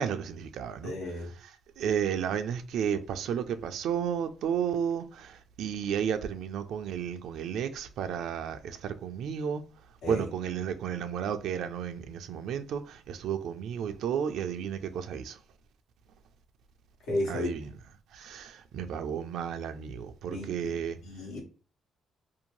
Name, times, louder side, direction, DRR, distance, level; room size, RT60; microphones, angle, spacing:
voice 1, 0.0-0.9 1.4-1.5 1.8-9.6 10.1-15.4 17.3-17.7 18.1-21.0, right 8 dB, 80° right, 0.4 m, -32 dB
voice 2, 0.8-1.3 10.0-10.3 17.1-17.5 20.3-20.5 21.0-21.4, left 1 dB, 85° left, 1.2 m, -33 dB
2.6 x 2.1 x 2.9 m
cardioid pair, 90°, 0 cm